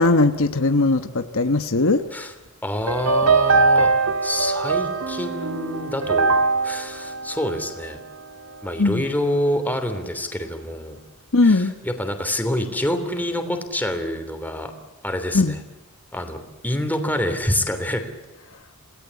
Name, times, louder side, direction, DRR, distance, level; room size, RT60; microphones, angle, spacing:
voice 1, 0.0-2.0 8.8-9.0 11.3-11.7 15.3-15.5, left 3 dB, 65° left, 8 dB, 1.2 m, -19 dB
voice 2, 2.6-3.9 4.2-6.3 6.6-8.0 8.6-11.0 11.4-14.7 15.0-15.6 16.1-18.1, left 1 dB, 10° left, 6 dB, 3.1 m, -26 dB
sound 1, 2.9-8.2, right 3 dB, 75° right, 2.3 m, -21 dB
28.5 x 18.0 x 8.3 m, 1.1 s
head